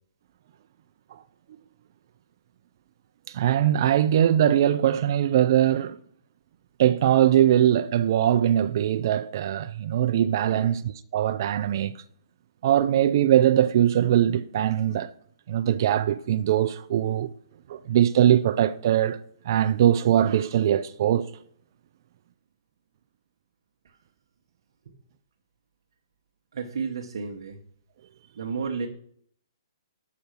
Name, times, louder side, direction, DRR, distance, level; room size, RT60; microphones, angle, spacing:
voice 1, 3.3-6.0 6.8-10.8 11.1-11.9 12.6-15.1 15.5-17.3 17.7-19.2 19.5-21.3, right 11 dB, 45° right, 0.4 m, -21 dB
voice 2, 26.5-27.6 28.4-28.9, right 5 dB, 65° right, 1.0 m, -32 dB
7.0 x 5.8 x 6.5 m
hypercardioid pair, 155°, 3 cm